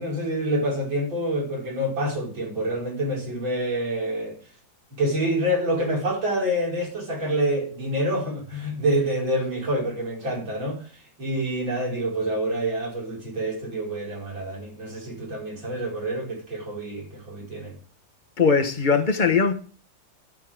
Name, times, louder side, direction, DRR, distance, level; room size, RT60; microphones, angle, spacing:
voice 1, 0.0-4.4 5.0-10.8 11.2-17.8, right 1 dB, 85° right, 5.9 m, -27 dB
voice 2, 18.4-19.5, left 5 dB, 30° left, 1.3 m, -20 dB
12.5 x 8.6 x 3.5 m
omnidirectional pair, 2.1 m